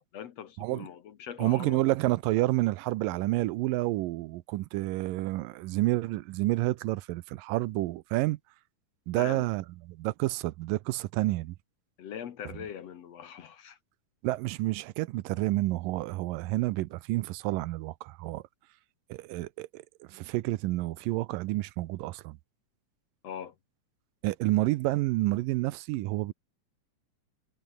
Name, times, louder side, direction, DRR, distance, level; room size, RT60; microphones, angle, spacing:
voice 1, 0.0-1.8 9.2-9.5 12.0-13.8 23.2-23.5, left 9 dB, 60° left, 2.1 m, -41 dB
voice 2, 0.6-0.9 1.4-8.4 9.1-11.6 14.2-18.4 19.1-22.4 24.2-26.3, right 18 dB, 85° right, 2.4 m, -29 dB
omnidirectional pair, 3.9 m